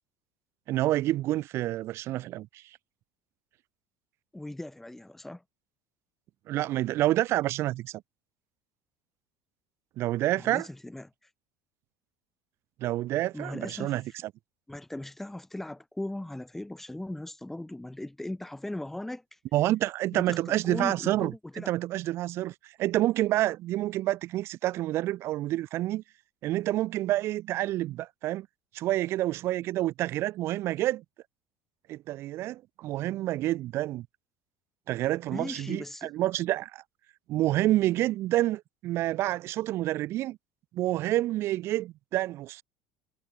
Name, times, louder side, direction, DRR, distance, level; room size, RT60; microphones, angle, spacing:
voice 1, 0.7-2.6 6.5-8.0 10.0-10.7 12.8-14.0 19.5-26.0 26.4-28.5 28.7-31.0 31.9-34.1 34.9-36.8 37.3-40.4 40.7-42.6, right 15 dB, 50° right, 7.3 m, -28 dB
voice 2, 4.3-5.4 10.4-11.3 13.3-13.9 14.7-19.4 20.2-21.7 35.3-36.1, left 1 dB, 5° left, 4.9 m, -38 dB
cardioid pair, 145°, 6 cm